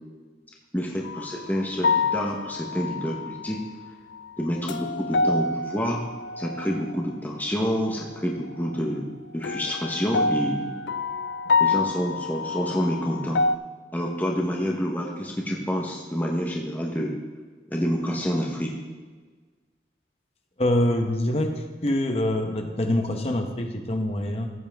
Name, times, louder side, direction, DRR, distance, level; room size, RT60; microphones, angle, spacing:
voice 1, 0.7-3.6 4.4-6.0 6.4-9.1 9.3-10.7 11.6-13.4 13.9-17.2 17.7-18.8, equal, 10° left, -2 dB, 1.0 m, -28 dB
sound 1, 1.0-1.4 1.8-3.6 4.1-7.0 9.4-13.6, left 3 dB, 70° left, 0.4 m, -27 dB
voice 2, 20.6-24.5, left 1 dB, 35° left, 4 dB, 0.9 m, -25 dB
14.0 x 8.2 x 3.5 m, 1.4 s
head